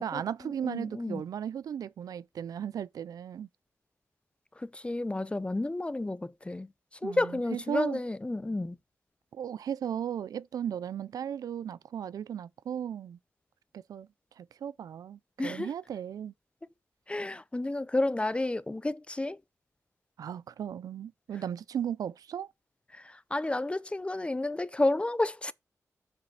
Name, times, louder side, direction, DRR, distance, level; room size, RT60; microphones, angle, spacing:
voice 1, 0.0-3.5 7.0-8.0 9.3-13.2 13.7-14.1 14.4-16.3 20.2-22.5, right 9 dB, 85° right, 0.4 m, -36 dB
voice 2, 0.6-1.2 4.6-6.7 7.0-8.8 15.4-15.7 17.1-19.4 22.9-25.5, left 2 dB, 20° left, 0.5 m, -31 dB
7.5 x 4.9 x 5.6 m
cardioid pair, 70°, 6 cm